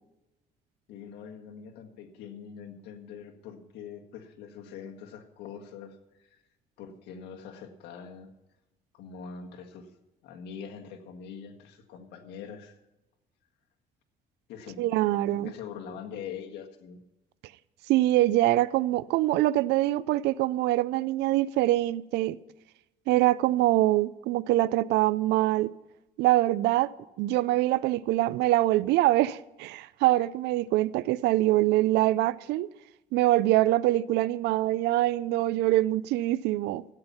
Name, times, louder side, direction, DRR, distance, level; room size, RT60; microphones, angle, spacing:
voice 1, 0.9-6.4 6.8-8.3 8.9-9.9 10.2-12.8 14.5-14.8 15.1-17.0, left 7 dB, 85° left, 1.7 m, -43 dB
voice 2, 14.8-15.5 17.9-22.4 23.1-25.7 26.2-26.9 27.2-32.7 33.1-36.8, right 16 dB, 85° right, 0.4 m, -24 dB
13.0 x 8.8 x 5.7 m
cardioid pair, 110°, 17 cm